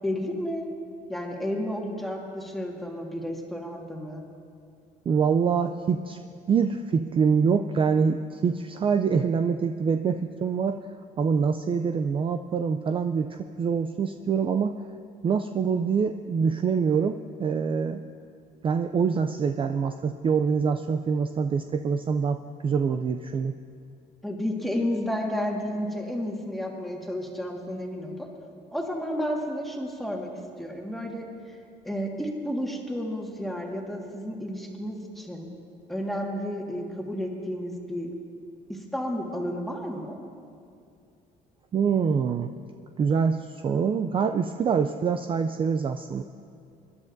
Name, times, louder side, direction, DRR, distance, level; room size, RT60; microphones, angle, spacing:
voice 1, 0.0-0.6 1.1-4.2 24.2-28.3 28.7-30.3 30.6-31.3 31.8-35.5 35.9-38.1 38.7-40.2, equal, ahead, -1 dB, 1.7 m, -31 dB
voice 2, 5.1-6.2 6.5-10.9 11.2-14.7 15.2-18.0 18.6-23.5 41.7-42.5 43.0-46.2, right 6 dB, 30° right, 7 dB, 0.4 m, -25 dB
25.0 x 11.0 x 2.6 m, 2.4 s
cardioid pair, 110°, 17 cm